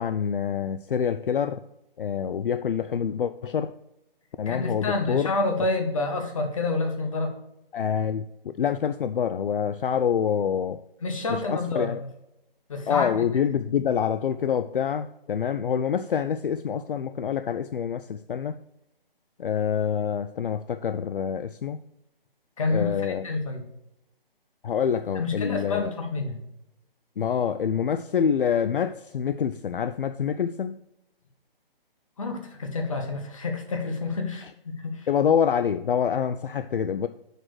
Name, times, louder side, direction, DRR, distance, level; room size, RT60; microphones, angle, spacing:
voice 1, 0.0-1.6 2.0-3.7 4.4-5.3 7.7-10.8 11.3-12.0 12.9-18.6 19.4-21.8 22.7-23.3 24.6-25.9 27.2-30.8 35.1-37.1, left 7 dB, 65° left, 11 dB, 0.4 m, -26 dB
voice 2, 4.5-7.3 11.0-11.9 12.7-13.3 22.6-23.6 25.1-26.4 32.2-35.0, left 3 dB, 35° left, 4 dB, 1.3 m, -28 dB
6.5 x 4.6 x 6.2 m, 0.87 s
hypercardioid pair, 175°, 29 cm